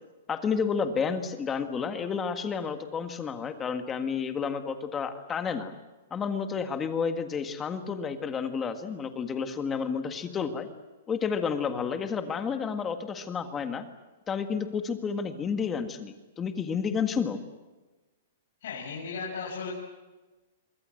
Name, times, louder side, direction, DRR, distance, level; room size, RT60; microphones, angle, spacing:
voice 1, 0.3-5.7 6.1-10.7 11.1-13.8 14.3-17.4, left 6 dB, 15° left, 8 dB, 1.7 m, -31 dB
voice 2, 18.6-19.7, left 5 dB, 60° left, -4 dB, 7.4 m, -35 dB
26.0 x 23.5 x 7.8 m, 1.2 s
hypercardioid pair, 170°, 0 cm